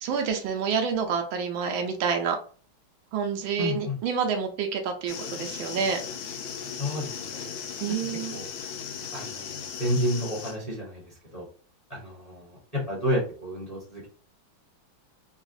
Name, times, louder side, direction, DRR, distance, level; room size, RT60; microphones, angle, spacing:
voice 1, 0.0-2.4 3.1-6.0 7.8-8.4, right 6 dB, 80° right, 4 dB, 1.4 m, -28 dB
voice 2, 3.6-3.9 6.8-7.5 8.3-8.5 9.1-11.4 11.9-14.1, equal, 25° left, -6 dB, 1.1 m, -31 dB
sound 1, 5.1-10.6, left 7 dB, 85° left, 1.4 m, -37 dB
3.9 x 2.4 x 2.6 m, 0.40 s
omnidirectional pair, 2.2 m